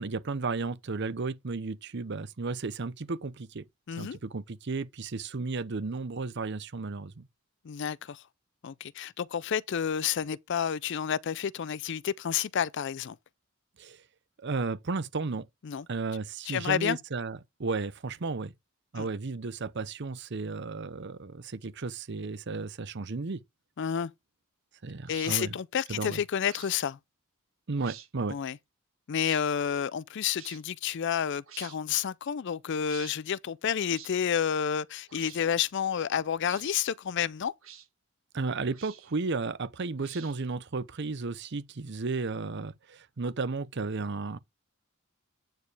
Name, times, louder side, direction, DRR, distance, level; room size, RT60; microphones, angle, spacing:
voice 1, 0.0-3.7 4.0-7.3 13.8-14.0 14.4-15.5 15.9-18.5 18.9-23.4 24.8-25.6 25.9-26.2 27.7-28.4 38.3-44.4, right 3 dB, 55° right, 0.7 m, -34 dB
voice 2, 3.9-4.2 7.6-8.2 8.6-13.2 15.6-15.9 16.5-17.0 19.0-19.1 23.8-24.1 25.1-27.0 28.3-28.6 29.1-37.5, left 8 dB, 55° left, 0.4 m, -30 dB
sound 1, 25.1-25.3 26.4-26.7 27.7-28.1 29.2-29.4 30.3-30.6 31.5-31.8 32.8-33.2 33.9-34.1 35.1-35.4 36.4-36.7 37.6-37.9 38.7-39.2 40.0-40.5, right 10 dB, 70° right, 1.8 m, -48 dB
9.3 x 6.6 x 3.4 m
head